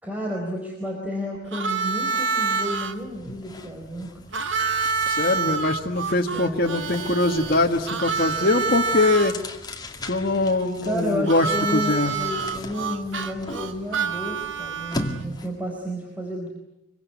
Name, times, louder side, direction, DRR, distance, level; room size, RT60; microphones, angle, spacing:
voice 1, 0.0-4.1 6.3-6.8 10.8-16.5, equal, 10° right, -1 dB, 4.6 m, -31 dB
Harmonica, 1.5-2.9 4.3-9.3 11.3-15.2, right 4 dB, 75° right, 1.6 m, -27 dB
sound 1, 1.8-2.0 2.3-15.7, left 1 dB, 20° left, 2.2 m, -40 dB
voice 2, 5.1-9.4 10.1-11.5 11.7-12.1, left 2 dB, 50° left, 2 dB, 1.6 m, -22 dB
25.0 x 24.5 x 9.5 m, 0.85 s
head